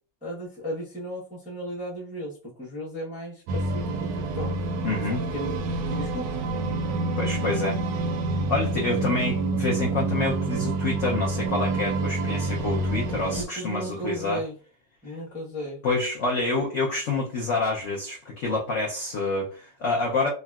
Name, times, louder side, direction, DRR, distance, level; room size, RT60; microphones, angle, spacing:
voice 1, 0.2-4.5 5.1-6.2 6.6-7.0 13.3-14.5 15.0-15.8, equal, 10° right, -7 dB, 0.4 m, -35 dB
sound 1, 3.5-13.4, right 3 dB, 75° right, 1.2 m, -28 dB
voice 2, 4.8-5.2 7.2-7.8 8.5-14.4 15.1-15.2 15.8-20.3, left 3 dB, 70° left, -2 dB, 0.7 m, -27 dB
3.6 x 2.1 x 2.3 m, 0.39 s
omnidirectional pair, 2.1 m